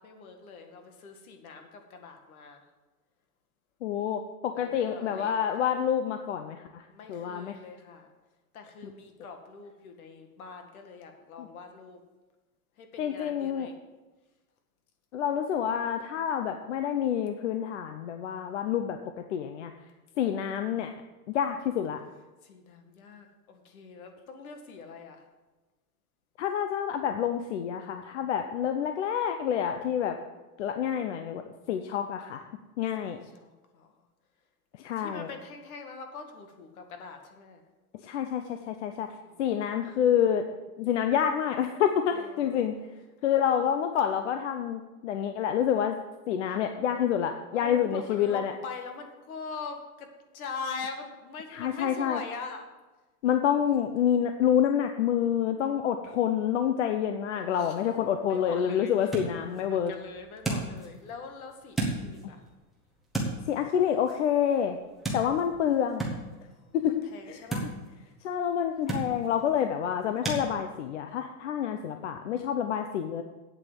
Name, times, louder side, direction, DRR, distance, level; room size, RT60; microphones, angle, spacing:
voice 1, 0.0-2.6 4.5-5.3 6.9-8.1 8.5-12.0 12.8-13.7 22.4-25.2 33.0-33.9 35.0-37.6 39.2-39.3 42.1-42.6 43.2-43.7 47.5-52.7 57.3-57.8 58.3-59.1 59.7-62.4 66.5-66.8 67.0-67.7, left 5 dB, 65° left, 5 dB, 2.1 m, -43 dB
voice 2, 3.8-6.8 7.1-7.6 8.8-8.9 11.4-11.5 13.0-13.7 15.1-19.0 19.3-19.7 20.2-20.9 21.3-22.0 26.4-30.2 30.6-31.4 31.7-32.4 32.8-33.2 34.8-35.3 38.0-39.1 39.4-40.5 40.8-42.7 43.2-46.0 46.3-48.5 51.5-52.2 53.2-59.9 63.5-64.8 65.1-66.1 66.7-67.5 68.2-73.2, left 9 dB, 50° left, 7 dB, 0.7 m, -28 dB
sound 1, 57.9-70.4, right 2 dB, ahead, 0.9 m, -37 dB
8.6 x 8.1 x 7.5 m, 1.2 s
supercardioid pair, 175°, 46 cm